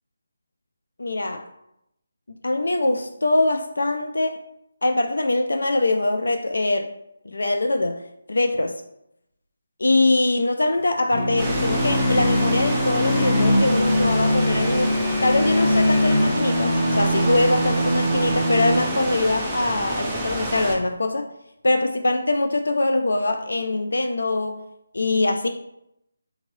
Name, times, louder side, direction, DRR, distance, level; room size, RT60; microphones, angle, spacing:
voice 1, 1.0-1.5 2.4-4.4 4.8-6.9 7.3-8.0 8.3-8.8 9.8-14.9 15.2-21.3 21.6-24.6 24.9-25.5, left 2 dB, 85° left, 5 dB, 0.3 m, -23 dB
sound 1, 11.1-19.4, left 1 dB, 45° left, 0.8 m, -22 dB
sound 2, 11.4-20.8, right 2 dB, 5° right, 0.5 m, -29 dB
3.7 x 3.1 x 2.6 m, 0.81 s
figure-of-eight pair, 170°, 0 cm